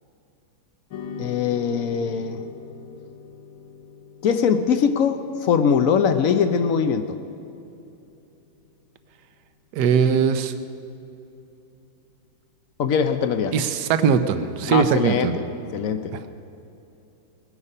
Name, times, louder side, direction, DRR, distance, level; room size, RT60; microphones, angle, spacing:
sound 1, 0.9-9.4, left 5 dB, 90° left, 2.0 m, -43 dB
voice 1, 1.2-2.4 4.2-7.2 12.8-13.5 14.7-15.3 15.7-16.1, left 7 dB, 70° left, 9 dB, 0.8 m, -21 dB
voice 2, 9.7-10.5 13.5-15.4 16.1-16.2, right 6 dB, 65° right, 10 dB, 1.2 m, -20 dB
21.0 x 9.8 x 5.5 m, 2.8 s
omnidirectional pair, 2.2 m